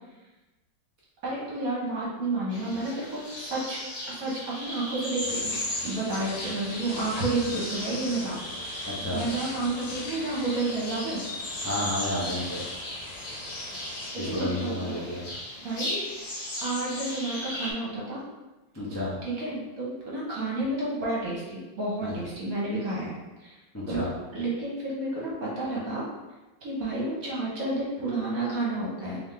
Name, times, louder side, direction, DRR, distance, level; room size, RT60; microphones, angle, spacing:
voice 1, 1.2-3.8 4.1-5.5 5.8-8.4 8.6-8.7 9.1-11.2 14.1-15.4 15.6-16.0 16.6-18.2 19.2-23.5 23.9-24.0 24.3-26.0 26.6-29.2, right 2 dB, 55° right, -5 dB, 1.4 m, -31 dB
sound 1, 2.5-17.7, left 1 dB, 60° left, 1.7 m, -36 dB
sound 2, 5.2-14.1, left 2 dB, 80° left, 1.5 m, -42 dB
voice 2, 8.8-9.3 11.6-12.6 14.1-15.2 18.7-19.2 22.0-22.2 23.7-24.2, left 1 dB, 20° left, -8 dB, 0.4 m, -31 dB
3.7 x 3.4 x 3.3 m, 1.1 s
omnidirectional pair, 2.0 m